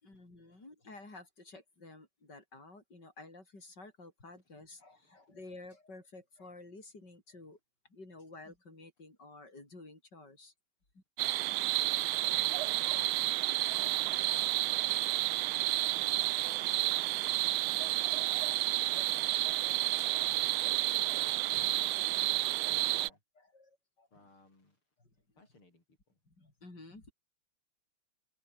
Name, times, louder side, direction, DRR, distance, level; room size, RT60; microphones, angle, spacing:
voice 1, 0.0-7.6 7.9-10.5 10.9-11.0 21.5-21.7 22.7-23.1 23.5-24.1 26.3-27.1, left 2 dB, 50° left, 8.2 m, -52 dB
voice 2, 4.8-5.3 11.4-14.2 14.9-15.7 16.0-19.7 20.2-23.2 24.1-24.8 25.4-26.2, left 2 dB, 85° left, 8.4 m, -63 dB
sound 1, 11.2-23.1, right 18 dB, 85° right, 1.4 m, -30 dB
omnidirectional pair, 2.3 m